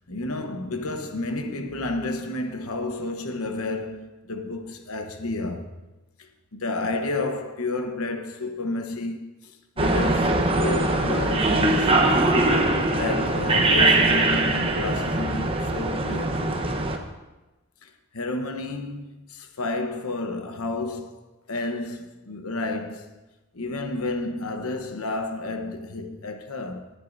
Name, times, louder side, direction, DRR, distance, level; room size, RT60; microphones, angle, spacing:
voice 1, 0.1-5.7 6.2-12.3 12.9-16.5 17.8-23.2 23.5-26.9, left 2 dB, 80° left, 1.0 m, -31 dB
sound 1, 9.8-17.0, right 2 dB, 25° right, 0.9 m, -22 dB
19.5 x 10.0 x 2.6 m
head